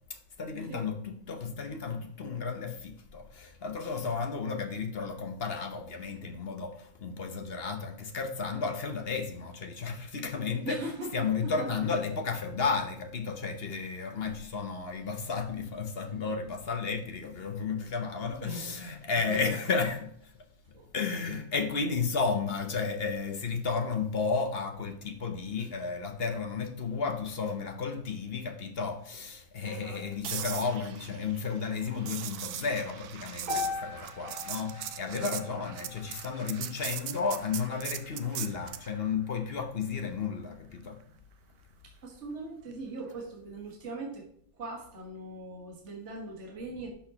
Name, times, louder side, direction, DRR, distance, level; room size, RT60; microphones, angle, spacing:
voice 1, 0.1-10.8 11.1-41.0, left 5 dB, 45° left, 0.8 m, -33 dB
voice 2, 10.6-11.1 11.4-11.8 18.4-18.7 19.1-19.6 20.7-20.9 29.6-30.0 35.0-35.4 41.8-44.3 44.5-46.9, right 2 dB, 40° right, 1.8 m, -40 dB
sound 1, 30.2-38.9 43.1-43.3, right 11 dB, 65° right, 1.0 m, -40 dB
sound 2, 33.5-37.6, left 4 dB, 20° right, 3.3 m, -40 dB
11.5 x 6.3 x 2.9 m
omnidirectional pair, 1.9 m